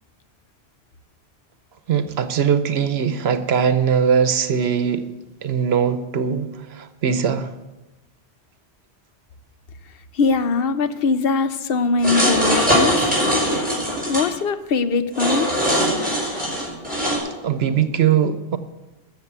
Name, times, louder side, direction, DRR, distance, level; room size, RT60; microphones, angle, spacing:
voice 1, 1.9-5.1 5.4-7.5 16.5-16.7 17.4-18.6, right 7 dB, 75° right, 1.0 m, -20 dB
voice 2, 10.1-13.0 14.1-15.5, left 4 dB, 65° left, 1.0 m, -21 dB
sound 1, 12.0-14.2 15.1-17.2, equal, 10° right, 5.7 m, -21 dB
13.0 x 7.2 x 8.1 m
omnidirectional pair, 1.1 m